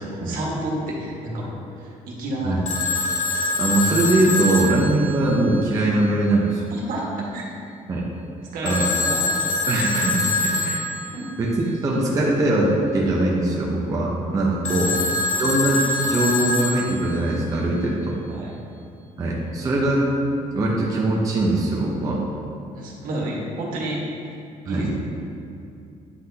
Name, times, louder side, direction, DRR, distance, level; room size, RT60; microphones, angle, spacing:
voice 1, 0.0-2.7 6.7-7.4 8.5-9.3 11.1-11.2 14.7-14.9 18.3-18.6 22.7-24.4 24.6-24.9, right 1 dB, 75° right, -3 dB, 1.6 m, -30 dB
Telephone, 2.7-5.8 8.7-11.2 14.7-17.3, left 2 dB, 50° left, 1.1 m, -24 dB
voice 2, 3.6-6.7 7.9-8.1 8.6-8.8 9.7-10.9 11.4-15.1 15.4-18.2 19.2-20.1 20.5-22.2 24.7-24.9, right 2 dB, 25° right, -4 dB, 0.7 m, -21 dB
9.6 x 5.8 x 2.8 m, 2.5 s
cardioid pair, 175°, 15 cm